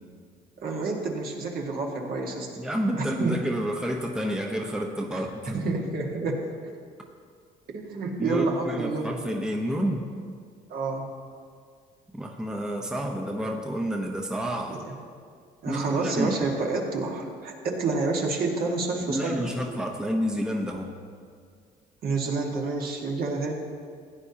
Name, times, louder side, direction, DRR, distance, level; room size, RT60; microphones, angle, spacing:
voice 1, 0.6-2.5 3.0-3.4 5.1-5.2 5.5-6.4 7.7-9.1 10.7-11.1 14.7-14.9 15.6-19.5 22.0-23.5, right 3 dB, 60° right, 0 dB, 1.7 m, -29 dB
voice 2, 2.6-5.8 8.2-10.0 12.1-14.8 15.6-16.4 19.1-20.9, equal, 5° right, 1 dB, 0.9 m, -29 dB
16.0 x 9.6 x 2.9 m, 2.1 s
cardioid pair, 110°, 17 cm